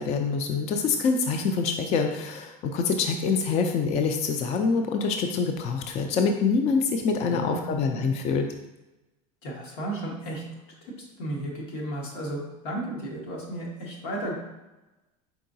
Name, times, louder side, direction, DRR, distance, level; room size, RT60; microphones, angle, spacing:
voice 1, 0.0-8.5, left 5 dB, 35° left, 5 dB, 0.3 m, -25 dB
voice 2, 7.2-8.1 9.4-10.4 10.8-14.3, right 1 dB, 85° left, -2 dB, 1.3 m, -34 dB
4.7 x 3.7 x 2.6 m, 1.0 s
supercardioid pair, 130°, 20 cm